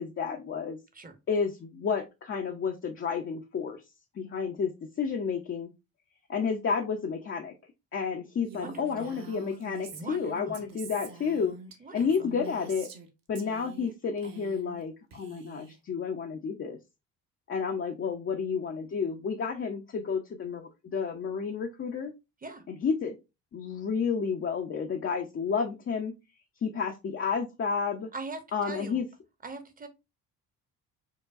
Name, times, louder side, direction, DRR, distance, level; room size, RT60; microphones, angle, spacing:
voice 1, 0.0-0.8 1.3-3.8 4.2-4.7 5.0-5.7 6.3-7.5 7.9-11.5 11.9-12.9 13.3-16.8 17.5-22.1 22.7-23.2 23.5-26.1 26.6-28.1 28.5-29.1, left 6 dB, 30° left, 2 dB, 0.5 m, -31 dB
voice 2, 8.5-9.1 9.9-10.6 11.8-12.3 22.4-22.6 28.1-28.4 28.7-29.0 29.4-29.9, right 3 dB, 20° right, 8 dB, 0.8 m, -41 dB
Female speech woman speaking, 8.5-13.1 13.4-13.9 14.2-14.8 15.1-15.8, right 4 dB, 50° right, 0.9 m, -46 dB
4.6 x 2.2 x 2.4 m, 0.25 s
hypercardioid pair, 50°, 44 cm